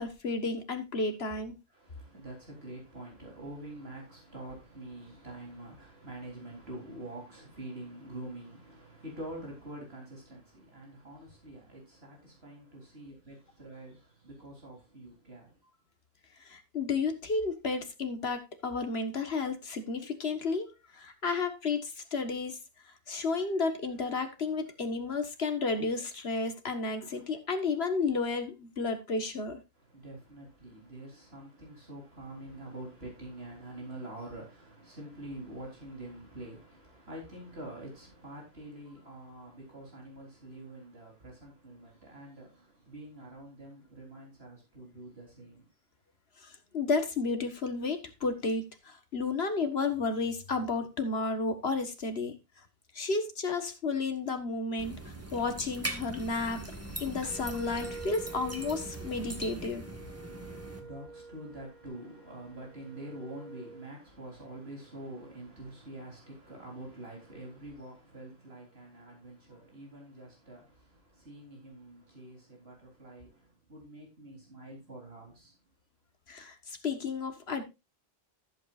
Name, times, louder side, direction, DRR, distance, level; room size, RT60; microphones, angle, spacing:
voice 1, 0.0-1.6 16.4-22.6 22.9-29.6 46.4-52.3 52.9-56.6 57.0-59.8 76.3-77.6, left 4 dB, 75° left, 1.8 m, -32 dB
voice 2, 1.7-15.8 29.8-45.7 60.6-75.6, right 1 dB, 75° right, 4.2 m, -46 dB
sound 1, 54.8-60.8, right 2 dB, 15° right, 1.8 m, -41 dB
Wind instrument woodwind instrument, 57.2-63.9, right 3 dB, 40° right, 3.7 m, -47 dB
14.5 x 8.2 x 2.5 m
omnidirectional pair, 1.1 m